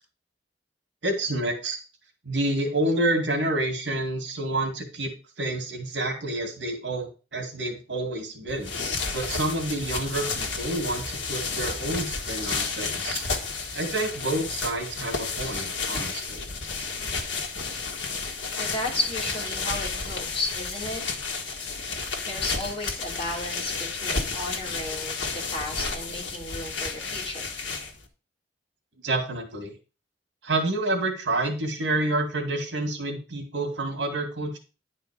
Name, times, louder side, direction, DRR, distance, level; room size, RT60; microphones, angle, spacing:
voice 1, 1.0-1.8 2.2-5.1 5.4-8.7 9.1-13.2 13.7-16.4 29.0-29.7 30.4-34.6, right 2 dB, 80° right, 2 dB, 2.2 m, -28 dB
sound 1, 8.5-28.1, left 4 dB, 85° left, 1.6 m, -32 dB
voice 2, 18.6-21.0 22.3-27.5, left 2 dB, 35° left, -4 dB, 3.4 m, -33 dB
10.5 x 4.5 x 5.0 m, 0.33 s
head